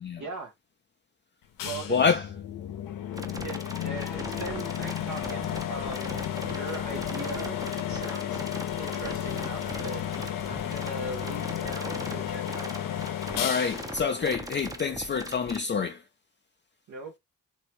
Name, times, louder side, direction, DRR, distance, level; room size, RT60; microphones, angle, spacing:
voice 1, 0.2-0.5 1.6-2.3 3.4-7.6 7.9-8.4 8.8-10.0 10.4-12.7 16.9-17.2, right 3 dB, 65° right, 0.8 m, -40 dB
sound 1, 1.6-15.1, left 10 dB, 85° left, 0.6 m, -33 dB
voice 2, 1.9-2.2 13.4-16.0, left 5 dB, 35° left, 0.4 m, -27 dB
sound 2, 3.1-15.6, right 2 dB, 10° right, 0.6 m, -40 dB
3.2 x 2.7 x 3.0 m
cardioid pair, 50°, 33 cm